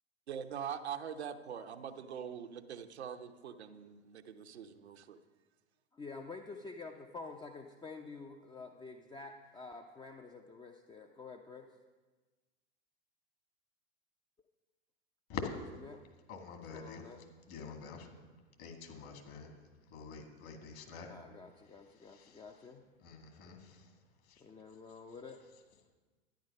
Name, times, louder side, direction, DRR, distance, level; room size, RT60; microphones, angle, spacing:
voice 1, 0.3-5.2, right 8 dB, 75° right, 7 dB, 0.9 m, -43 dB
voice 2, 5.9-11.7 15.9-16.0 16.7-17.2 21.1-22.9 24.4-25.5, left 4 dB, 15° left, 4 dB, 0.7 m, -49 dB
voice 3, 16.3-17.0 17.5-19.6 19.9-21.1 22.0-22.4 23.0-24.4, left 6 dB, 45° left, 4 dB, 2.2 m, -46 dB
11.5 x 10.5 x 5.4 m, 1.3 s
figure-of-eight pair, 90°, 33 cm